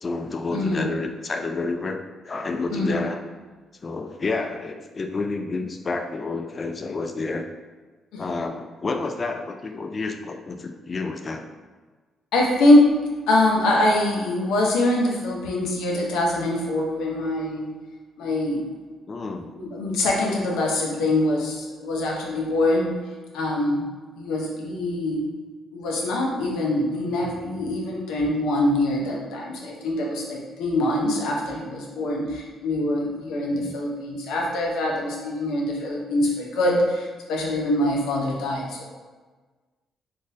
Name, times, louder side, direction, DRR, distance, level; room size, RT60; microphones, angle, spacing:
voice 1, 0.0-3.2 3.8-7.5 8.2-11.5 19.1-19.6 33.5-33.8, left 3 dB, 35° left, 6 dB, 0.3 m, -30 dB
voice 2, 0.5-0.9 2.7-3.1 8.1-8.3 12.3-13.0 13.3-17.7 18.2-18.7 19.5-22.9 23.3-23.9 24.2-25.3 25.7-38.9, left 1 dB, 85° left, -2 dB, 0.7 m, -23 dB
3.7 x 2.5 x 2.6 m, 1.4 s
cardioid pair, 90°, 0 cm